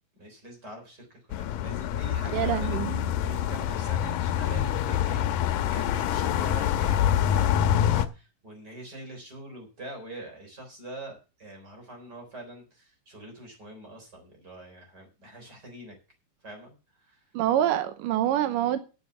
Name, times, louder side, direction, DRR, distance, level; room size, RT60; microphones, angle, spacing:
voice 1, 0.2-16.0 16.4-17.4, right 1 dB, 30° right, 4.2 m, -44 dB
sound 1, 1.3-8.1, left 10 dB, 90° left, 2.4 m, -26 dB
voice 2, 2.3-3.0 17.3-18.8, right 12 dB, 90° right, 2.6 m, -26 dB
11.0 x 6.9 x 6.8 m
omnidirectional pair, 3.8 m